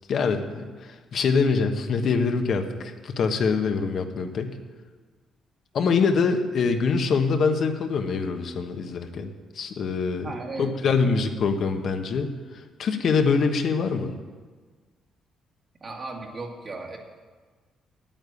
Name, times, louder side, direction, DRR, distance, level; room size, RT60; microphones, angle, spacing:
voice 1, 0.1-4.6 5.7-9.3 9.5-10.3 10.6-12.3 12.8-14.2, left 5 dB, 60° left, 6 dB, 1.2 m, -24 dB
voice 2, 10.2-10.7 15.8-17.0, right 3 dB, 40° right, -1 dB, 2.1 m, -35 dB
9.2 x 8.9 x 8.4 m, 1.4 s
cardioid pair, 90°, 0 cm